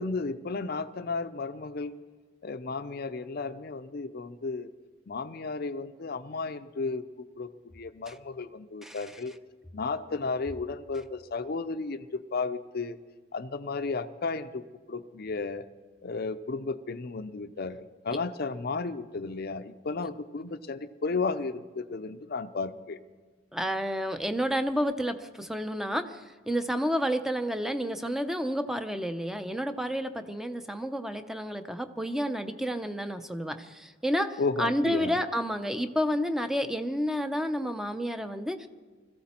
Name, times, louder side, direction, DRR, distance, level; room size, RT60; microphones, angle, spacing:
voice 1, 0.0-1.9 2.4-4.7 5.1-7.0 7.4-9.3 9.7-12.0 12.3-13.0 13.3-14.6 14.9-15.6 16.0-23.0 34.4-35.2, left 4 dB, 55° left, 9 dB, 0.6 m, -33 dB
voice 2, 23.5-38.7, equal, ahead, 9 dB, 0.6 m, -30 dB
21.5 x 15.0 x 4.3 m, 1.4 s
head